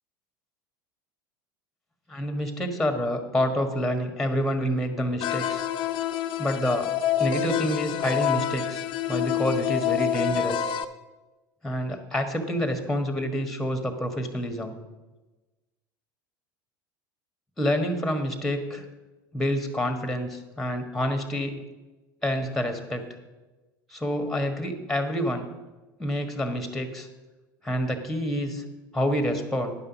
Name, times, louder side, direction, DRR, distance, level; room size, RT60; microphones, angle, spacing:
voice 1, 2.1-5.6 6.4-6.9 7.2-10.7 11.6-14.7 17.6-18.8 19.3-21.6 22.2-23.0 23.9-25.5 26.0-27.1 27.6-28.6 28.9-29.7, equal, 5° left, 7 dB, 1.5 m, -28 dB
sound 1, 5.2-10.8, left 10 dB, 50° left, 0.6 m, -27 dB
10.5 x 5.6 x 7.0 m, 1.2 s
hypercardioid pair, 80°, 11 cm